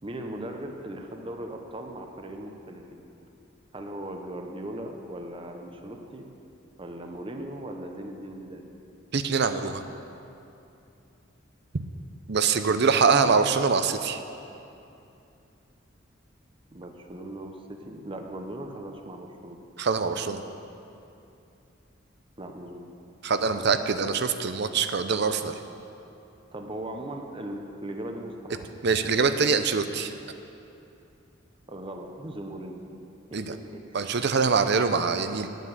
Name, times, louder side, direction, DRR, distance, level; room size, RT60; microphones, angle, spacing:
voice 1, 0.0-3.0 3.7-6.3 6.8-8.7 16.7-19.6 22.4-22.9 26.5-28.7 31.7-32.8 33.3-34.1, right 1 dB, 25° right, 4 dB, 0.9 m, -38 dB
voice 2, 9.1-9.8 12.3-14.2 19.8-20.4 23.2-25.5 28.8-30.1 33.3-33.5 33.9-35.5, right 5 dB, 60° right, 9 dB, 0.7 m, -24 dB
9.9 x 9.1 x 7.9 m, 2.7 s
head